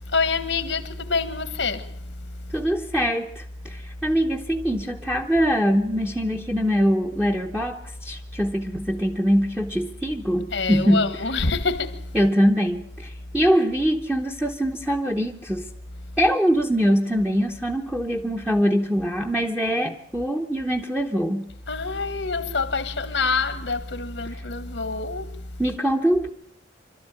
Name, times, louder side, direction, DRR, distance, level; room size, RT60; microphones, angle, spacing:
voice 1, 0.1-2.6 10.5-12.3 16.2-16.3 21.7-25.7, left 4 dB, 80° left, 1.5 m, -27 dB
voice 2, 2.5-11.1 12.1-15.7 16.2-21.5 24.2-24.4 25.6-26.3, equal, 5° right, 0.9 m, -23 dB
26.0 x 13.0 x 8.9 m
head